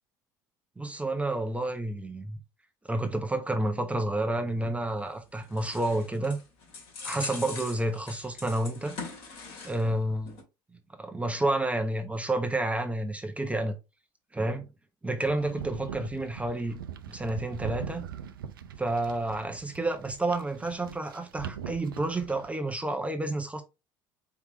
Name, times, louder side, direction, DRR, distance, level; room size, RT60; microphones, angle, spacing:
voice 1, 0.8-2.4 2.9-6.4 7.0-9.0 9.6-10.4 11.0-13.8 14.3-14.7 15.0-16.8 17.1-18.1 18.8-23.6, right 2 dB, 10° right, 0.9 m, -30 dB
sound 1, 5.0-10.0 10.3-10.4, left 4 dB, 50° left, 2.7 m, -42 dB
sound 2, 15.3-22.5, right 8 dB, 90° right, 0.5 m, -42 dB
4.7 x 3.5 x 2.9 m
hypercardioid pair, 75°, 11 cm